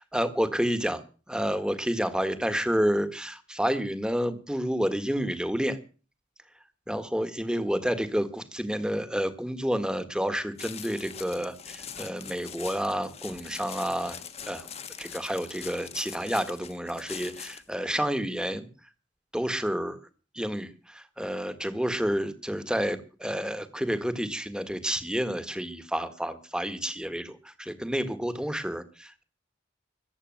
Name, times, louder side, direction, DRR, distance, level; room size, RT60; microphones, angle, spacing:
voice 1, 0.1-1.0 1.3-5.8 6.9-14.2 14.4-14.7 15.0-18.7 19.3-20.0 20.3-29.2, equal, 5° right, 10 dB, 1.7 m, -29 dB
sound 1, 10.6-17.7, left 8 dB, 35° left, 1.3 m, -43 dB
14.5 x 10.5 x 7.8 m, 0.38 s
head